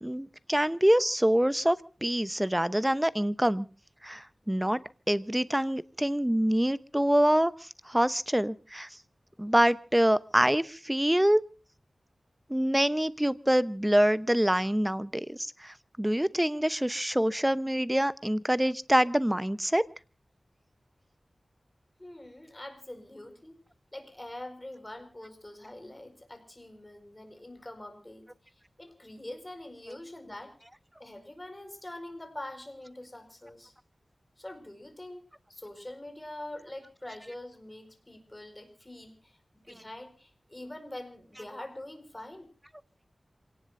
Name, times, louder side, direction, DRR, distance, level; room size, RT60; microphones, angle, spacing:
voice 1, 0.0-3.7 4.0-4.8 5.1-7.5 7.9-8.9 9.4-11.4 12.5-19.8, equal, 10° right, 15 dB, 0.9 m, -25 dB
voice 2, 22.0-23.6 23.9-28.3 28.8-30.5 31.0-33.7 34.4-42.5, left 1 dB, 20° left, 7 dB, 4.9 m, -44 dB
27.5 x 18.0 x 2.6 m, 0.35 s
wide cardioid pair, 70°, 0 cm